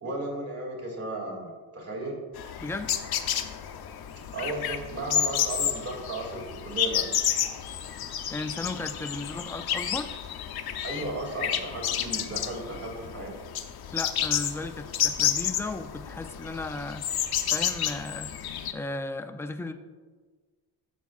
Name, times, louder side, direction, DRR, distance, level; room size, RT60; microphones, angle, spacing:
voice 1, 0.0-2.2 4.3-7.0 10.8-13.3, right 2 dB, 35° right, -1 dB, 2.4 m, -35 dB
sound 1, 2.4-18.7, left 10 dB, 60° left, 0.7 m, -30 dB
voice 2, 2.6-2.9 8.3-10.1 13.9-17.1 17.5-18.3 18.7-19.7, left 2 dB, 5° left, 7 dB, 0.3 m, -35 dB
11.5 x 7.1 x 2.4 m, 1.4 s
cardioid pair, 115°, 43 cm